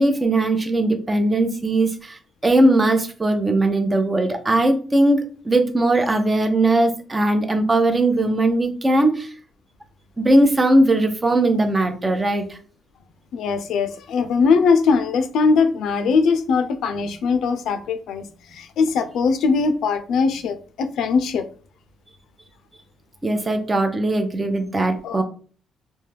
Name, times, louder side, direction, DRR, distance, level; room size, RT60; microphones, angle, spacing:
voice 1, 0.0-9.3 10.2-12.6 23.2-25.2, right 1 dB, 25° right, 0.6 m, -19 dB
voice 2, 13.3-18.3 18.5-21.5 25.0-25.2, left 5 dB, 75° left, 0.4 m, -20 dB
2.3 x 2.1 x 3.2 m
cardioid pair, 90°, 0 cm